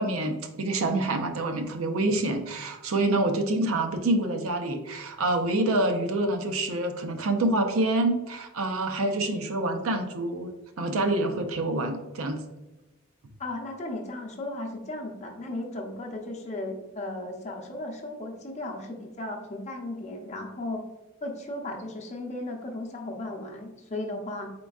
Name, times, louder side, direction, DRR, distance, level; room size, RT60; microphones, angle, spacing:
voice 1, 0.0-10.5 10.8-12.4, right 2 dB, 85° right, 5 dB, 0.6 m, -27 dB
voice 2, 13.4-20.8 21.2-24.5, left 2 dB, 35° left, 1 dB, 0.7 m, -35 dB
4.3 x 3.8 x 2.4 m, 1.0 s
head